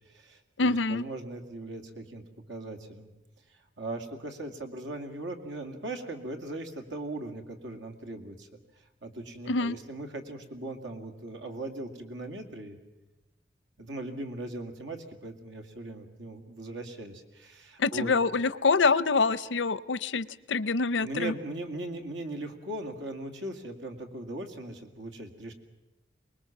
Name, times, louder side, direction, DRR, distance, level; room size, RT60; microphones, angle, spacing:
voice 1, 0.1-2.2 2.5-3.1 3.5-8.6 9.0-12.8 13.8-18.1 21.0-25.5, right 2 dB, 90° right, 5 dB, 2.4 m, -39 dB
voice 2, 0.6-1.0 9.5-9.8 17.8-21.3, left 4 dB, 90° left, 18 dB, 0.7 m, -26 dB
24.0 x 20.5 x 7.3 m, 1.0 s
head